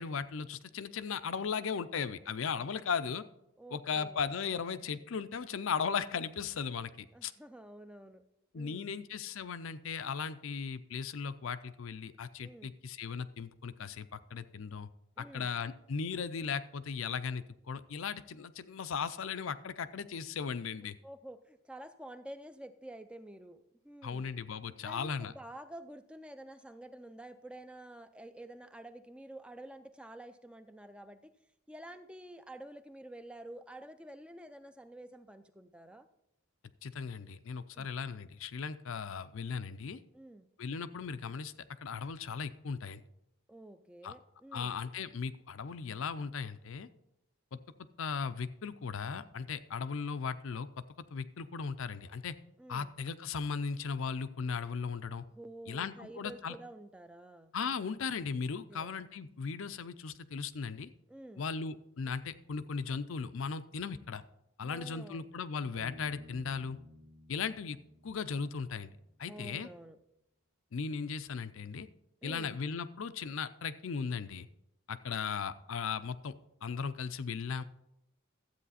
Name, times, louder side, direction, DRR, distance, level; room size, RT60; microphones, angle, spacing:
voice 1, 0.0-3.2 3.7-7.3 8.5-14.9 15.2-21.0 24.0-25.3 36.8-40.0 40.6-41.5 41.8-43.0 44.0-44.2 44.5-46.9 47.5-47.6 48.0-50.7 51.1-52.4 52.7-55.2 55.7-56.6 57.5-60.9 61.4-64.2 64.6-66.8 67.3-67.8 68.0-68.9 69.2-69.7 70.7-71.9 72.2-74.5 74.9-76.3 76.6-77.6, left 5 dB, 65° left, 13 dB, 0.5 m, -37 dB
voice 2, 3.6-4.2 7.1-8.2 8.5-8.9 12.4-12.7 15.2-15.5 20.8-24.3 24.8-31.3 31.7-36.1 37.7-37.9 40.1-40.5 43.5-44.8 52.6-52.9 55.3-57.5 58.7-58.9 61.1-61.5 64.6-65.3 69.3-70.0 72.2-72.6, right 1 dB, 5° right, 10 dB, 0.4 m, -49 dB
Bass guitar, 65.7-69.3, left 1 dB, 85° right, 2.3 m, -55 dB
12.5 x 8.4 x 4.2 m, 0.86 s
head